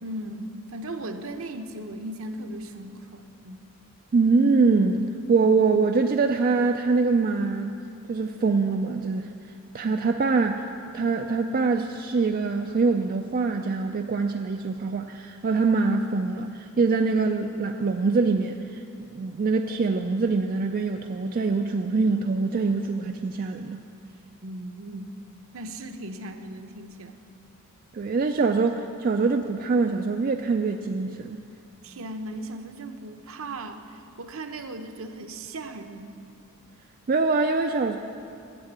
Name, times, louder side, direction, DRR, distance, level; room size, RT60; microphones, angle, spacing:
voice 1, 0.0-3.7 24.4-25.1 25.5-27.2 31.8-36.2, right 1 dB, 65° right, 6 dB, 0.8 m, -37 dB
voice 2, 4.1-7.8 8.1-9.3 9.7-10.7 10.9-18.8 19.1-23.8 27.9-31.4 37.1-38.0, right 4 dB, 40° right, 5 dB, 0.4 m, -24 dB
10.0 x 8.1 x 8.1 m, 2.5 s
head